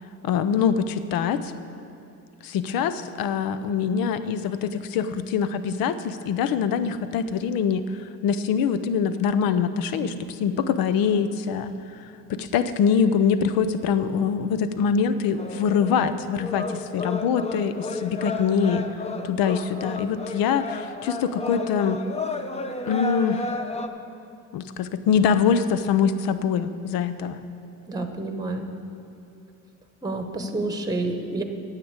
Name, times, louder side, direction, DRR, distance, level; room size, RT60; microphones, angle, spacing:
voice 1, 0.2-1.5 2.4-7.8 8.2-11.7 12.3-18.8 19.2-22.0 22.9-23.4 24.5-27.4, left 7 dB, 90° left, 11 dB, 0.7 m, -24 dB
sound 1, 15.4-23.9, left 3 dB, 20° left, 0.6 m, -32 dB
voice 2, 27.9-28.7 30.0-31.4, right 2 dB, 10° right, 6 dB, 1.0 m, -29 dB
9.7 x 7.4 x 8.0 m, 2.6 s
cardioid pair, 100°, 34 cm